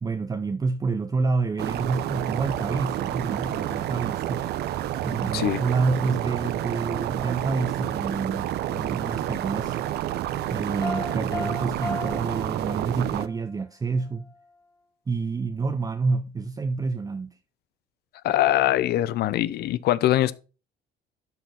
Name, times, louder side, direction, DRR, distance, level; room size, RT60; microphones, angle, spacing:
voice 1, 0.0-4.5 5.0-9.8 10.5-14.3 15.1-17.4, right 4 dB, 20° right, 0.7 m, -28 dB
sound 1, 1.6-13.3, right 12 dB, 75° right, 0.8 m, -29 dB
Piano, 10.8-13.4, left 2 dB, 25° left, 2.2 m, -36 dB
voice 2, 18.2-20.3, left 13 dB, 70° left, 0.7 m, -22 dB
12.5 x 4.3 x 5.9 m
cardioid pair, 110°, 17 cm